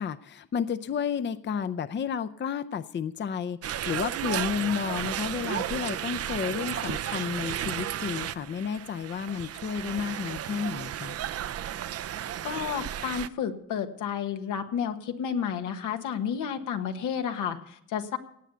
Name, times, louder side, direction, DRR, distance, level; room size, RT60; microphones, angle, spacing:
voice 1, 0.0-11.2, left 7 dB, 40° left, 13 dB, 0.6 m, -31 dB
sound 1, 3.6-13.3, right 11 dB, 55° right, 0.6 m, -33 dB
voice 2, 12.4-18.2, left 8 dB, 85° left, 6 dB, 1.5 m, -31 dB
18.0 x 8.3 x 6.9 m, 0.70 s
cardioid pair, 90°, 30 cm